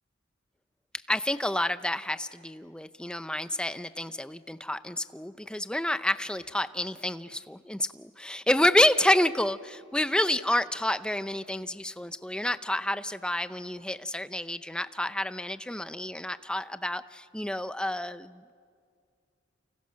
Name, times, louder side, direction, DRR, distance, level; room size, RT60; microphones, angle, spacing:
voice 1, 1.1-18.5, left 1 dB, 5° left, 12 dB, 0.6 m, -29 dB
29.5 x 29.5 x 6.4 m, 2.2 s
head